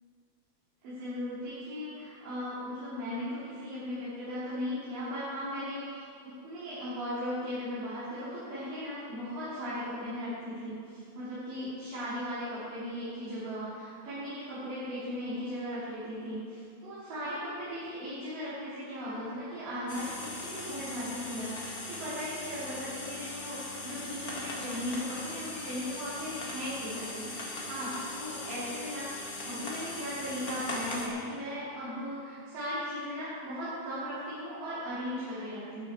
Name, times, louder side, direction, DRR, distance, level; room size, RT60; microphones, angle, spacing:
voice 1, 0.8-6.1 6.4-29.1 29.4-35.9, equal, 65° right, -13 dB, 4.6 m, -37 dB
sound 1, 19.9-31.1, left 2 dB, 45° left, 1.2 m, -40 dB
12.0 x 12.0 x 4.4 m, 2.3 s
omnidirectional pair, 4.3 m